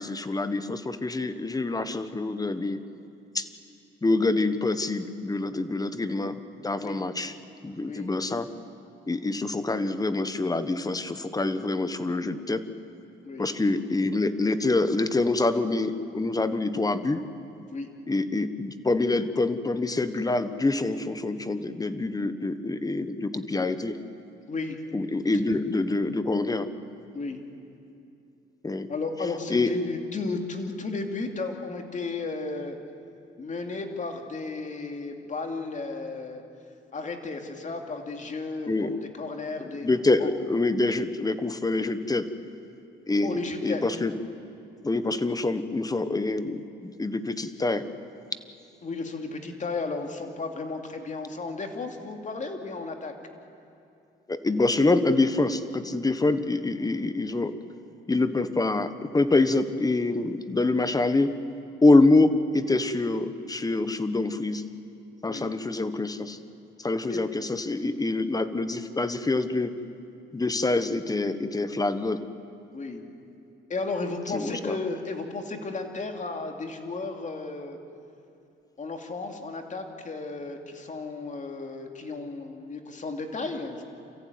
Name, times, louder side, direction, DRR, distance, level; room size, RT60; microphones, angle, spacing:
voice 1, 0.0-2.8 3.3-3.5 4.0-7.3 7.6-8.5 9.1-12.7 13.4-17.2 18.1-24.0 24.9-26.7 28.6-28.9 29.5-29.8 38.7-38.9 39.8-42.3 43.1-44.1 44.8-47.8 54.3-57.5 58.1-61.3 61.8-64.6 65.2-66.4 66.8-69.7 70.3-72.2 74.3-74.8, left 2 dB, 20° left, 11 dB, 1.3 m, -26 dB
voice 2, 24.5-24.8 27.1-27.4 28.9-32.8 33.4-36.4 36.9-39.9 40.2-40.3 43.2-43.8 48.8-53.1 65.3-65.5 67.1-67.2 72.7-73.0 73.7-77.8 78.8-83.8, left 3 dB, 40° left, 4 dB, 2.7 m, -34 dB
28.0 x 14.5 x 9.4 m, 2.7 s
cardioid pair, 90°, 20 cm